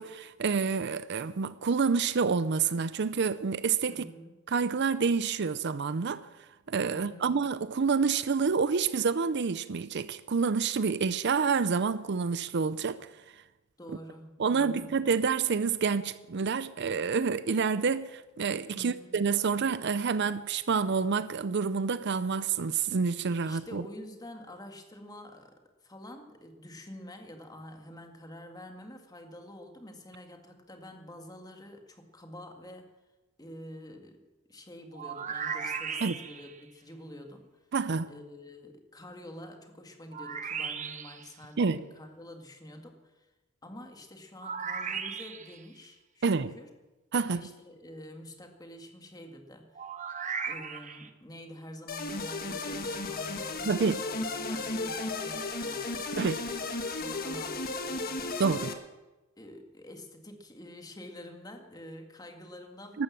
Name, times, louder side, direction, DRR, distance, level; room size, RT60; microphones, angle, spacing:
voice 1, 0.0-4.1 4.5-6.3 6.7-13.1 14.4-23.8 36.0-36.1 37.7-38.1 41.6-41.8 46.2-46.5 47.1-47.4 53.6-54.0 56.1-56.4 58.4-58.8 62.9-63.0, right 5 dB, 55° right, 0.5 m, -28 dB
voice 2, 3.8-4.3 6.9-7.4 13.8-14.9 18.7-19.2 23.4-25.5 25.8-32.9 33.4-34.2 34.5-37.5 38.1-43.3 43.6-46.7 47.2-49.8 50.5-56.2 56.9-58.6 59.4-63.0, left 1 dB, 20° left, 1.8 m, -47 dB
sound 1, 34.9-36.6 40.1-41.3 44.4-45.6 49.8-51.1, right 6 dB, 35° right, 0.9 m, -36 dB
sound 2, 51.9-58.7, left 3 dB, 45° left, 1.5 m, -34 dB
14.5 x 12.0 x 7.5 m
head